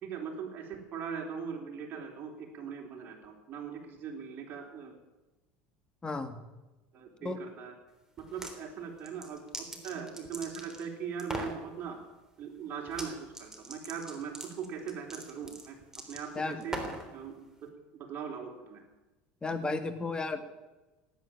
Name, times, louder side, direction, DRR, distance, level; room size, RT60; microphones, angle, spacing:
voice 1, 0.0-4.9 6.9-7.7 8.2-12.0 12.4-15.8 16.1-16.8 17.1-17.3 17.6-17.7 18.0-18.8, right 7 dB, 45° right, 0 dB, 3.9 m, -40 dB
voice 2, 6.0-6.4 7.2-7.4 16.4-16.6 19.4-20.6, left 3 dB, 20° left, 8 dB, 2.1 m, -34 dB
sound 1, 8.2-8.6 9.0-10.9 11.2-11.6 12.9-13.1 13.3-17.1, right 1 dB, 10° right, 3.4 m, -40 dB
18.0 x 9.1 x 8.6 m, 1.1 s
supercardioid pair, 95°, 5 cm